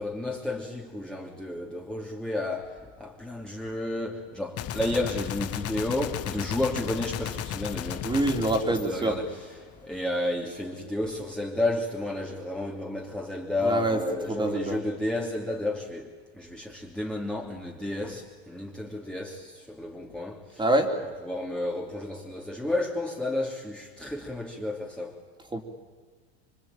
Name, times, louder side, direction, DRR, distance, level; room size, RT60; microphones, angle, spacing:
voice 1, 0.0-8.1 8.7-9.5 9.8-20.6 21.2-25.2, left 1 dB, 5° left, 2.9 m, -32 dB
Gunshot gunfire, 4.6-9.8, left 11 dB, 45° left, 1.7 m, -35 dB
voice 2, 8.0-9.2 13.6-14.0 14.3-14.8 20.6-20.9 25.5-25.6, right 1 dB, 15° right, 3.5 m, -25 dB
26.0 x 23.5 x 9.2 m
supercardioid pair, 110°, 33 cm